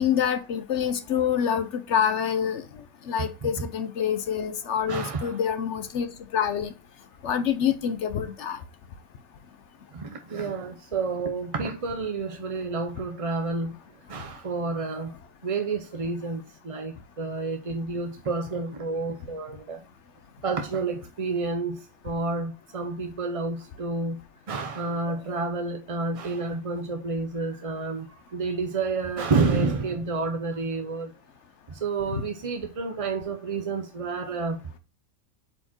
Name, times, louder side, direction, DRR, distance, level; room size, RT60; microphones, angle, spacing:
voice 1, 0.0-2.6 3.1-6.1 6.3-6.7 7.2-8.6 25.3-25.4, left 8 dB, 60° left, 0.9 m, -26 dB
voice 2, 4.9-5.4 9.9-13.7 14.1-15.1 15.4-19.8 20.4-24.2 24.5-28.1 28.3-31.1 31.7-34.8, right 3 dB, 40° right, 0.4 m, -29 dB
7.7 x 4.3 x 2.9 m
omnidirectional pair, 1.5 m